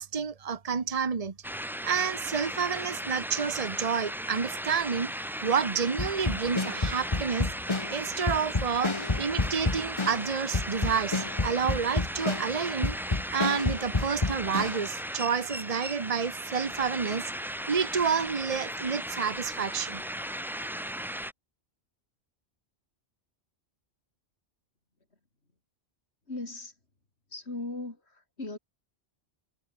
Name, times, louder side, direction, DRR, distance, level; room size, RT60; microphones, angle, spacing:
voice 1, 0.0-1.3 1.8-5.1 5.4-7.5 7.9-12.9 13.3-17.3 17.7-20.0, right 6 dB, 35° right, 1.2 m, -29 dB
sound 1, 1.4-21.3, equal, 5° right, 0.5 m, -37 dB
sound 2, 6.0-14.9, left 3 dB, 25° left, 1.4 m, -30 dB
voice 2, 26.3-26.8 27.3-28.6, left 2 dB, 85° left, 4.3 m, -38 dB
omnidirectional pair, 1.1 m